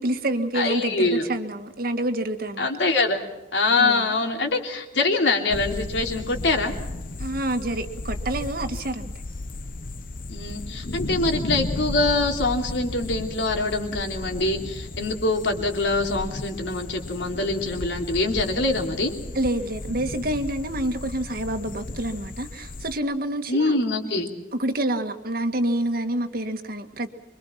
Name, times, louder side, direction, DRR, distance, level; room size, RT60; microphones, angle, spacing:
voice 1, 0.0-2.7 3.8-4.1 7.2-9.0 19.4-23.8 24.5-27.1, right 1 dB, 55° right, 7 dB, 1.8 m, -27 dB
voice 2, 0.5-1.3 2.6-3.2 3.5-6.7 10.3-19.1 23.5-24.3, left 2 dB, 75° left, 3 dB, 3.3 m, -24 dB
sound 1, 5.5-23.0, left 2 dB, 50° left, 1.0 m, -34 dB
25.5 x 23.5 x 5.9 m, 0.99 s
head